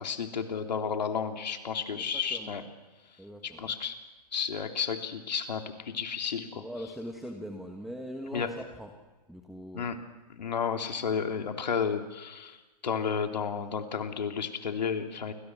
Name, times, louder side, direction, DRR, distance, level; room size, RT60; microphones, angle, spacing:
voice 1, 0.0-2.6 3.4-4.0 4.3-6.6 8.3-8.5 9.7-10.0 10.3-15.3, left 6 dB, 85° left, 5 dB, 3.1 m, -32 dB
voice 2, 2.0-2.5 3.2-3.6 6.5-8.9 9.3-9.9, equal, ahead, 3 dB, 1.4 m, -41 dB
29.0 x 21.0 x 6.2 m, 1.2 s
hypercardioid pair, 145°, 21 cm